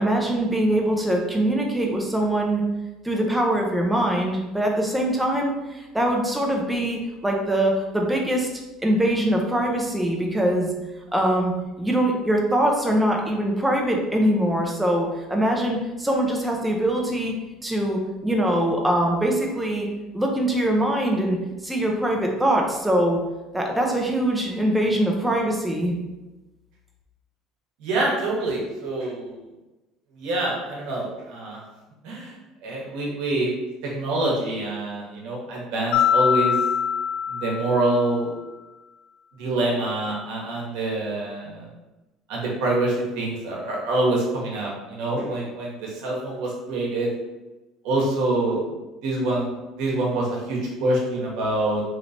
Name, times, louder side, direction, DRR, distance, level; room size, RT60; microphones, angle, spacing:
voice 1, 0.0-2.6 3.0-8.5 8.8-10.7 11.1-17.3 17.6-19.9 20.1-21.4 21.6-23.2 23.5-25.9, right 1 dB, 5° right, 0 dB, 0.5 m, -23 dB
voice 2, 27.8-29.4 30.1-31.6 32.0-32.4 32.6-33.5 33.8-36.6 37.3-38.3 39.4-41.7 42.3-47.1 47.8-48.7 49.0-51.8, right 2 dB, 75° right, -2 dB, 1.1 m, -26 dB
Mallet percussion, 35.9-38.3, left 8 dB, 80° left, 0.4 m, -23 dB
3.1 x 3.1 x 2.5 m, 1.1 s
cardioid pair, 155°, 0 cm